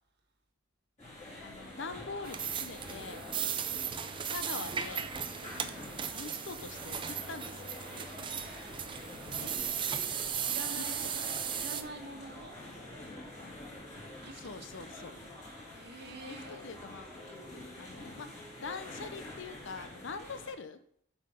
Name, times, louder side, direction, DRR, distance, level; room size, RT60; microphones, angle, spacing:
sound 1, 1.0-20.5, left 1 dB, 35° left, 3.4 m, -47 dB
voice 1, 1.4-3.2 4.2-5.1 5.7-7.7 10.8-10.9 14.4-15.2 16.3-17.1 17.8-18.3 18.6-20.8, left 4 dB, 60° left, 11 dB, 0.7 m, -43 dB
sound 2, 2.2-11.8, right 8 dB, 25° right, 0.4 m, -37 dB
voice 2, 3.7-4.1 5.5-5.9 9.4-9.5 10.5-12.6 14.2-15.0 15.7-16.6, right 2 dB, 50° right, 4 dB, 1.4 m, -47 dB
7.9 x 5.8 x 4.9 m, 0.65 s
head